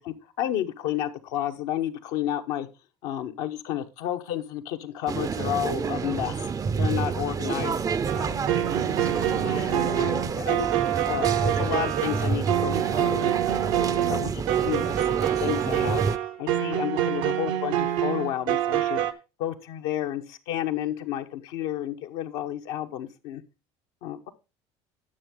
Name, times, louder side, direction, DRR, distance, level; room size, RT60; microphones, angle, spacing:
voice 1, 0.0-2.7 3.0-6.5 6.8-7.8 8.1-9.1 9.4-10.7 11.0-13.3 13.9-16.0 16.4-19.0 19.4-23.4 24.0-24.3, left 12 dB, 80° left, 6 dB, 0.9 m, -31 dB
sound 1, 5.1-16.2, right 5 dB, 25° right, 0.4 m, -29 dB
sound 2, 8.1-19.1, right 11 dB, 80° right, 0.8 m, -26 dB
10.0 x 6.6 x 3.6 m, 0.28 s
supercardioid pair, 90°, 14 cm